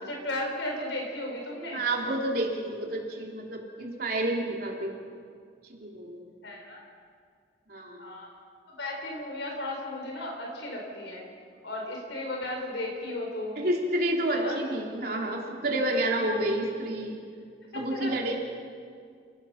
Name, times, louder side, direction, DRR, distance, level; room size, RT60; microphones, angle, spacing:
voice 1, 0.0-1.8 6.4-6.8 8.0-8.3 8.8-11.2 11.6-13.6 14.3-14.6 17.7-18.1, left 1 dB, 80° left, 0 dB, 5.0 m, -35 dB
voice 2, 1.7-4.9 5.7-6.3 7.7-8.1 13.6-17.3 17.7-18.3, right 1 dB, 55° right, -1 dB, 3.5 m, -29 dB
28.5 x 17.0 x 5.9 m, 2.1 s
head